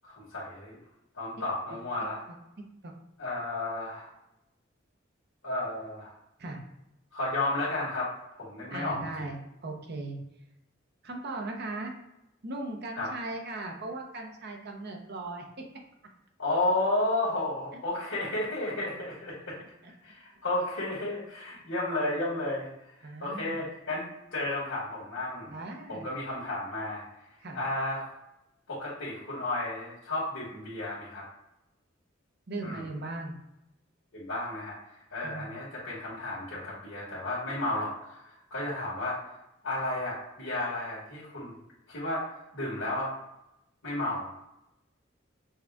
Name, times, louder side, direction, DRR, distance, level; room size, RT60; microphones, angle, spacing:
voice 1, 0.0-0.8 1.2-2.2 3.2-4.1 5.4-6.1 7.1-8.1 8.4-9.3 12.9-13.1 16.4-19.6 20.0-22.7 23.2-24.1 24.3-25.6 25.9-27.0 27.5-28.2 28.7-31.2 32.6-32.8 34.1-34.8 35.1-39.2 39.6-41.5 41.9-42.2 42.5-43.1 43.8-44.2, left 2 dB, 80° left, -10 dB, 1.7 m, -32 dB
voice 2, 8.7-9.3 9.6-10.2 11.0-11.9 12.4-15.7 19.8-19.9 23.0-23.7 25.5-26.2 27.4-27.6 32.5-33.3 35.2-35.5, right 2 dB, 55° right, 2 dB, 0.9 m, -38 dB
6.4 x 2.4 x 3.5 m, 0.88 s
head